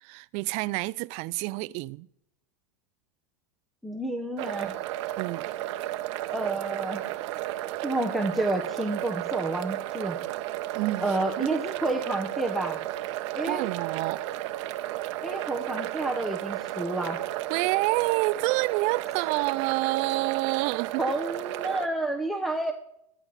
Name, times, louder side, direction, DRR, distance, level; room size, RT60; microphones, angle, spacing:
voice 1, 0.0-2.1 5.2-5.5 10.8-11.6 13.5-14.2 17.5-21.0, right 21 dB, 40° right, 0.4 m, -28 dB
voice 2, 3.8-4.8 6.3-7.1 7.8-10.2 11.0-12.8 13.3-13.7 15.2-17.2 21.0-22.7, right 2 dB, ahead, 1.0 m, -30 dB
sound 1, 4.4-21.9, right 15 dB, 55° right, 0.9 m, -33 dB
14.0 x 12.5 x 4.1 m
supercardioid pair, 130°, 18 cm